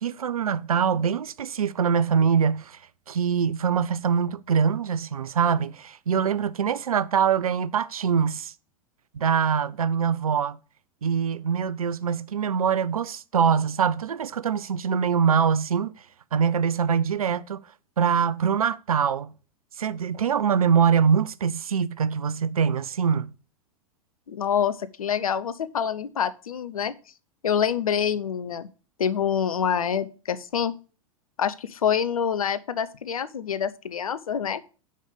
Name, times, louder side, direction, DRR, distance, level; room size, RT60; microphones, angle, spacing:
voice 1, 0.0-2.8 3.1-8.5 9.1-10.6 11.0-15.9 16.3-17.6 18.0-19.3 19.8-23.3, right 7 dB, 85° right, 0.5 m, -23 dB
voice 2, 24.3-26.9 27.4-28.7 29.0-30.7 31.4-34.6, left 8 dB, 80° left, 0.6 m, -26 dB
5.4 x 5.2 x 6.6 m
figure-of-eight pair, 95°, 18 cm